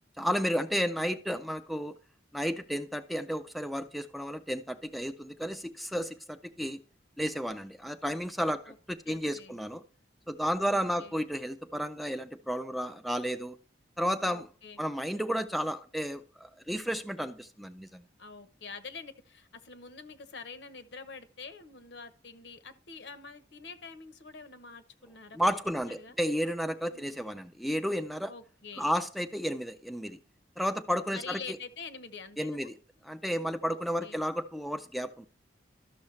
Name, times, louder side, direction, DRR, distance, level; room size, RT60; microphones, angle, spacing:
voice 1, 0.2-1.9 2.3-6.8 7.2-9.8 10.3-13.6 14.0-14.5 14.8-18.0 25.3-28.3 28.8-30.2 30.6-31.6 32.4-32.8 33.0-35.3, equal, ahead, 9 dB, 0.3 m, -32 dB
voice 2, 9.1-9.6 10.6-11.2 14.3-14.8 18.2-25.4 25.8-26.2 26.9-27.2 28.3-28.9 31.1-32.7 33.6-33.8 34.0-34.2, left 5 dB, 75° left, 10 dB, 0.9 m, -46 dB
13.0 x 6.3 x 3.2 m, 0.42 s
head